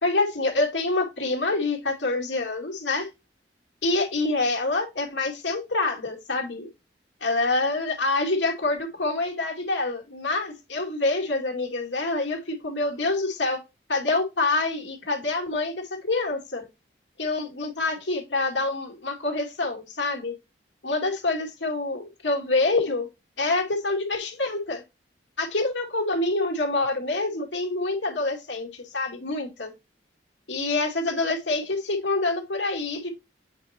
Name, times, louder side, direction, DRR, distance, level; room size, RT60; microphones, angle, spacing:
voice 1, 0.0-3.1 3.8-6.7 7.2-13.6 13.9-16.7 17.2-20.3 20.8-23.1 23.4-24.8 25.4-29.7 30.5-33.1, left 2 dB, 80° left, 2.2 m, -26 dB
8.2 x 4.3 x 2.8 m
head